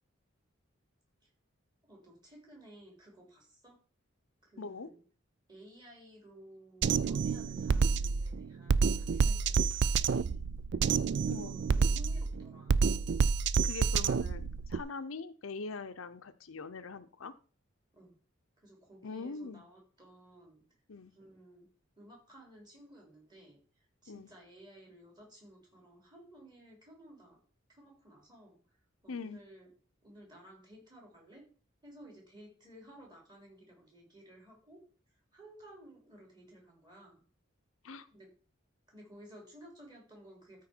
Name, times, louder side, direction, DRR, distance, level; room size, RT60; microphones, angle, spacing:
voice 1, 1.9-3.8 4.4-5.0 5.5-10.4 11.3-12.8 17.9-18.1 18.6-20.6 21.1-21.7 22.0-23.6 24.0-27.4 27.7-28.6 29.0-29.7 30.0-31.5 31.8-34.8 35.3-37.2 38.1-38.3 38.9-40.6, right 1 dB, 20° right, -1 dB, 3.4 m, -55 dB
voice 2, 4.6-4.9 11.2-11.5 13.6-17.3 19.0-19.6 20.9-21.1 24.1-24.3 29.1-29.4 37.8-38.1, left 4 dB, 85° left, 10 dB, 0.7 m, -42 dB
Drum kit, 6.8-14.8, right 5 dB, 55° right, 0.3 m, -29 dB
13.0 x 4.6 x 4.4 m, 0.38 s
head